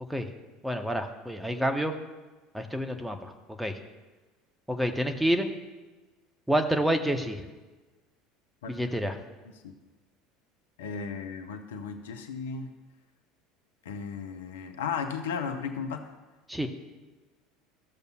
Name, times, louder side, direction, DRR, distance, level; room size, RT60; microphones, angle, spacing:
voice 1, 0.6-1.9 2.5-3.3 3.6-3.7 4.7-5.5 6.5-7.4 8.7-9.2 16.5-16.7, equal, 5° right, 5 dB, 0.9 m, -28 dB
voice 2, 10.8-12.7 13.8-16.1, left 6 dB, 70° left, 6 dB, 0.7 m, -35 dB
14.0 x 6.7 x 2.3 m, 1.2 s
figure-of-eight pair, 70°, 0 cm